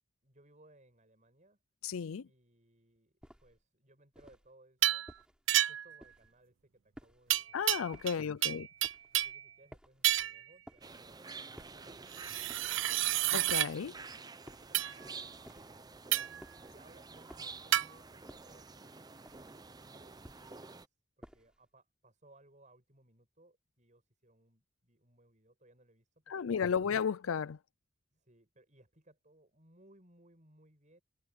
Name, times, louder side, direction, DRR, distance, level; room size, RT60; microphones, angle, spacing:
voice 1, 0.2-1.6 2.2-5.1 5.6-7.6 8.2-8.7 9.1-13.3 14.4-15.9 16.6-27.0 28.1-31.0, right 1 dB, 35° right, 7.9 m, -65 dB
voice 2, 1.8-2.2 7.5-8.7 13.3-13.9 26.3-27.6, left 7 dB, 85° left, 0.5 m, -33 dB
sound 1, 3.2-3.6 4.1-4.5 5.1-5.5 6.0-6.4 6.9-7.4 7.9-8.3 8.8-9.2 9.7-10.1 10.7-11.0 11.6-12.0 12.5-12.9 13.5-13.9 14.5-14.9 15.5-15.9 16.4-16.8 17.3-17.7 18.3-18.7 19.3-19.7 20.2-20.7 21.2-21.6, equal, 5° right, 6.3 m, -56 dB
sound 2, 4.8-5.1 5.5-6.0 7.3-8.2 8.4-9.4 10.0-10.4 12.1-13.7 14.7-14.9 16.1-16.4 17.7-17.9, right 14 dB, 65° right, 0.5 m, -30 dB
sound 3, 10.8-20.9, right 4 dB, 20° right, 0.6 m, -50 dB
head